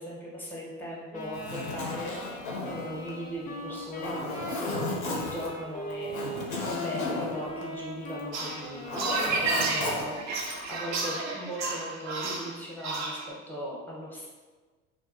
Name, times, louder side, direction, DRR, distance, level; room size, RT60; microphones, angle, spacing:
voice 1, 0.0-10.2 10.7-14.3, equal, 5° left, -5 dB, 0.7 m, -38 dB
Wind instrument woodwind instrument, 1.1-10.2, left 1 dB, 20° left, 0.3 m, -40 dB
Zipper (clothing), 1.2-8.3 8.6-10.8, left 2 dB, 90° left, 0.6 m, -35 dB
sound 1, 8.3-13.3, right 3 dB, 45° right, 0.5 m, -31 dB
2.4 x 2.3 x 2.4 m, 1.3 s
hypercardioid pair, 70°, 40 cm